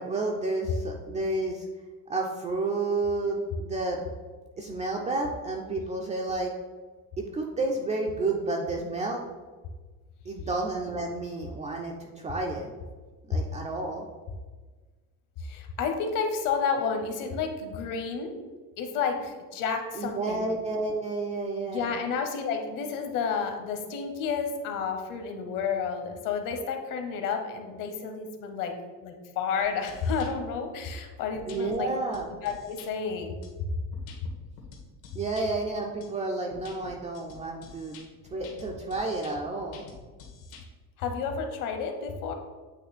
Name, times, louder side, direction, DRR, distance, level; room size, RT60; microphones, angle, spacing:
voice 1, 0.0-1.7 2.1-4.0 4.6-6.5 7.2-9.2 10.3-12.7 13.3-14.1 19.9-21.9 31.5-32.3 35.1-38.0 38.3-39.8, right 2 dB, 20° right, 0 dB, 0.3 m, -31 dB
voice 2, 15.4-18.3 18.8-20.5 21.7-28.7 29.0-31.9 32.4-33.4 41.0-42.3, left 6 dB, 55° left, 5 dB, 0.9 m, -31 dB
sound 1, 29.6-30.3 30.8-30.9 31.3-31.8 32.1-32.9 33.4-35.5 36.0-36.1 36.5-40.6, left 5 dB, 80° left, 1.6 m, -48 dB
8.5 x 3.0 x 4.1 m, 1.4 s
cardioid pair, 150°, 39 cm